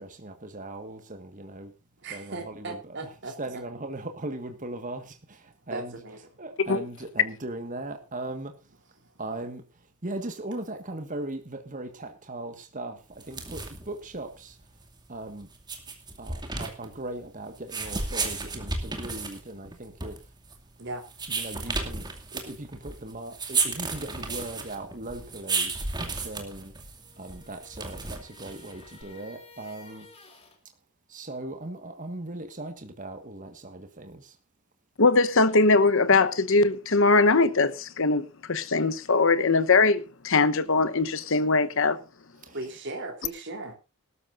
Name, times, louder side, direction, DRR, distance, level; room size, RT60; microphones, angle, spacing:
voice 1, 0.0-1.7 2.1-3.1 3.4-6.0 6.4-8.5 9.2-14.7 15.1-15.5 16.2-20.3 21.3-26.7 27.2-30.1 31.1-34.4 42.4-42.6, right 2 dB, 35° right, 1.6 m, -39 dB
voice 2, 2.0-3.6 5.7-6.2 9.0-9.1 20.8-21.1 42.5-43.8, right 2 dB, 55° right, 3.4 m, -37 dB
sound 1, 13.1-29.0, right 4 dB, 20° right, 2.3 m, -34 dB
sound 2, 27.0-30.6, left 3 dB, 25° left, 3.1 m, -53 dB
voice 3, 35.0-42.0, left 3 dB, 60° left, 1.0 m, -21 dB
19.5 x 13.0 x 2.6 m
head